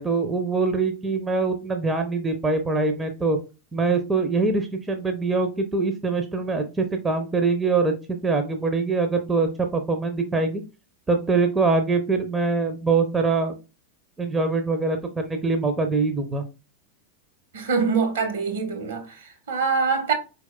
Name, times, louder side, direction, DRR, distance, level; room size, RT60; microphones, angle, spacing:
voice 1, 0.0-3.4 3.7-10.6 11.1-13.5 14.2-16.4, right 4 dB, 15° right, 0.7 m, -23 dB
voice 2, 17.5-20.1, right 5 dB, 60° right, 1.3 m, -24 dB
4.6 x 4.1 x 2.2 m
figure-of-eight pair, 90°, 0 cm